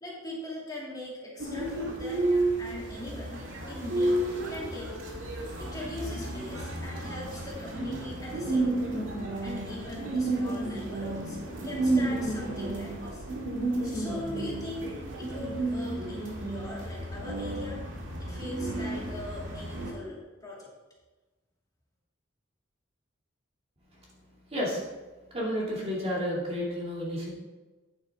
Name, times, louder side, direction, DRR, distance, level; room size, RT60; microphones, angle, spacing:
voice 1, 0.0-2.3 2.6-4.2 4.5-5.0 5.6-8.9 9.4-11.4 11.6-13.2 13.8-14.9 15.2-17.8 18.2-20.7, left 1 dB, 20° left, -5 dB, 2.6 m, -40 dB
sound 1, 1.4-19.9, right 2 dB, 70° right, 1.9 m, -32 dB
voice 2, 24.5-24.8 25.3-27.3, equal, 30° right, -4 dB, 2.5 m, -31 dB
9.6 x 8.6 x 3.6 m, 1.2 s
head